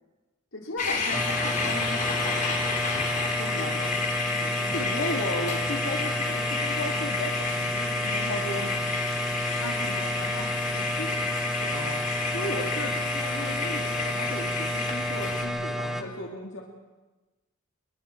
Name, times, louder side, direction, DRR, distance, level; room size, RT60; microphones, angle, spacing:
voice 1, 0.5-2.7 3.4-4.0 4.3-5.0 9.6-11.2 11.6-11.8, left 2 dB, 80° left, -1 dB, 4.6 m, -38 dB
sound 1, 0.8-15.4, left 4 dB, 35° left, 3.9 m, -31 dB
sound 2, 1.1-16.0, equal, ahead, 1.6 m, -31 dB
voice 2, 3.4-3.9 4.6-8.8 11.7-12.0 12.3-16.6, left 1 dB, 60° left, -2 dB, 2.5 m, -35 dB
29.0 x 25.5 x 4.6 m, 1.2 s
head